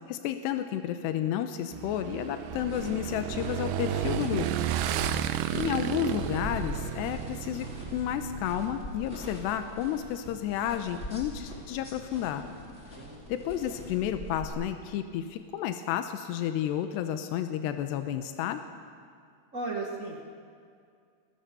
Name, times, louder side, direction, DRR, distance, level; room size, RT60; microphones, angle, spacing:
voice 1, 0.1-4.5 5.5-7.7 7.9-12.4 13.3-18.6, left 10 dB, 90° left, 8 dB, 3.1 m, -31 dB
Motorcycle / Engine, 1.7-8.8, right 11 dB, 85° right, 2.9 m, -33 dB
sound 1, 2.4-14.4, left 1 dB, 15° left, 4.3 m, -43 dB
voice 2, 13.0-13.3 19.5-20.2, right 3 dB, 70° right, -1 dB, 0.7 m, -38 dB
30.0 x 19.0 x 6.9 m, 2.2 s
omnidirectional pair, 4.7 m